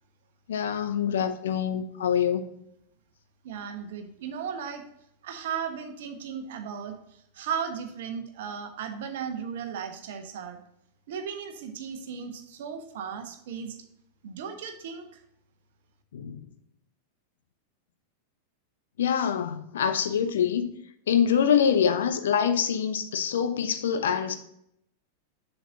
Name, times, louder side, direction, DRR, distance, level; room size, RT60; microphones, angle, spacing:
voice 1, 0.5-2.5 16.1-16.4 19.0-20.7 21.1-24.3, left 8 dB, 60° left, 0.8 m, -25 dB
voice 2, 3.4-4.8 5.2-7.0 7.3-10.6 11.1-13.8 14.2-15.1, right 7 dB, 55° right, 1.2 m, -36 dB
7.4 x 7.2 x 2.7 m
figure-of-eight pair, 90°, 0 cm